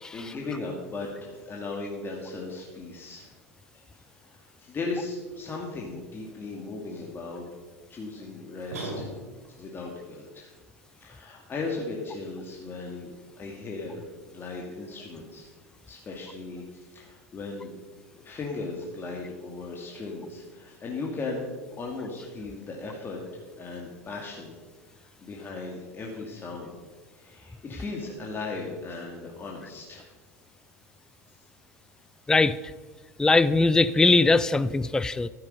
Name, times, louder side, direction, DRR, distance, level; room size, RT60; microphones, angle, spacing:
voice 1, 0.1-3.3 3.7-3.8 4.2-7.5 7.9-9.1 9.5-10.5 11.0-14.0 14.3-15.5 15.9-17.7 18.1-21.5 21.8-24.6 25.0-26.8 27.1-30.1, left 3 dB, 25° left, -1 dB, 2.4 m, -37 dB
sound 1, 8.7-9.6, right 1 dB, 80° right, 3.8 m, -36 dB
voice 2, 33.2-35.3, left 3 dB, 10° left, 16 dB, 0.4 m, -21 dB
12.5 x 10.5 x 5.4 m, 1.3 s
hypercardioid pair, 85°, 8 cm